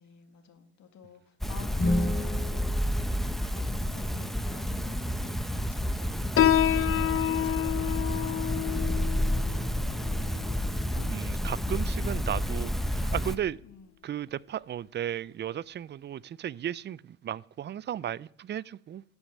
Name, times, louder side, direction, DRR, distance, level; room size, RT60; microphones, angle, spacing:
voice 1, 0.0-3.2 3.4-5.4 5.7-7.1 7.4-8.8 9.2-11.1 13.6-14.0, left 7 dB, 70° left, 2.0 m, -51 dB
sound 1, 1.4-13.4, equal, ahead, 0.7 m, -30 dB
sound 2, 1.8-3.9, left 1 dB, 25° left, 1.5 m, -32 dB
Piano, 6.4-13.4, left 12 dB, 45° left, 0.6 m, -30 dB
voice 2, 11.1-13.6 14.0-19.0, right 10 dB, 35° right, 0.4 m, -35 dB
13.0 x 5.3 x 8.6 m
cardioid pair, 90°, 30 cm